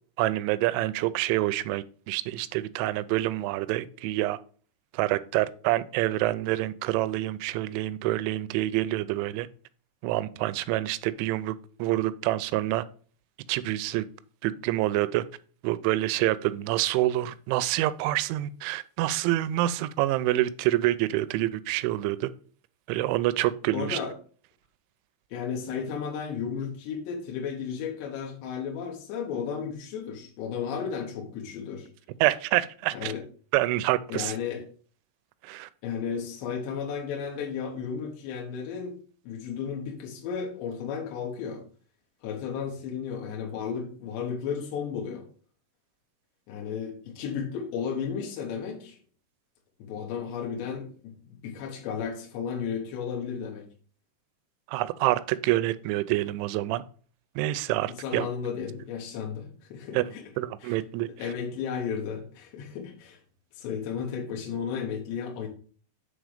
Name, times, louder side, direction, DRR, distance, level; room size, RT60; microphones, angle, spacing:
voice 1, 0.2-4.4 4.9-9.5 10.0-11.5 11.8-12.8 13.5-14.0 14.4-15.2 15.6-22.3 22.9-24.0 32.2-33.1 33.5-34.3 35.4-35.7 54.7-56.8 57.4-58.3 59.9-60.1 60.4-61.1, right 16 dB, 85° right, 2.8 m, -27 dB
voice 2, 23.7-24.1 25.3-31.9 32.9-33.2 34.1-34.6 35.8-39.0 39.2-41.6 42.2-45.3 46.5-49.0 49.8-53.7 57.9-60.2 60.6-60.8 61.0-63.2 63.6-65.5, left 6 dB, 70° left, 3.3 m, -34 dB
8.2 x 3.8 x 5.0 m
omnidirectional pair, 5.5 m